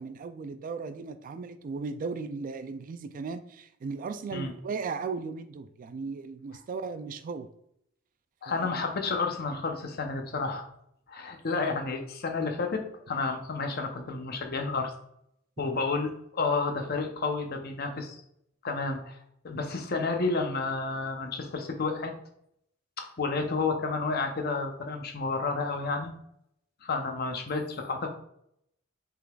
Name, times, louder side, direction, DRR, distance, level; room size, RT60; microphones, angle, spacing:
voice 1, 0.0-7.5 8.5-8.7, right 4 dB, 45° right, 10 dB, 0.3 m, -36 dB
voice 2, 8.4-10.6 11.1-14.9 15.6-18.2 18.6-19.2 19.4-22.1 23.0-26.1 26.8-28.1, left 4 dB, 50° left, 4 dB, 0.7 m, -31 dB
5.7 x 3.8 x 2.3 m, 0.74 s
head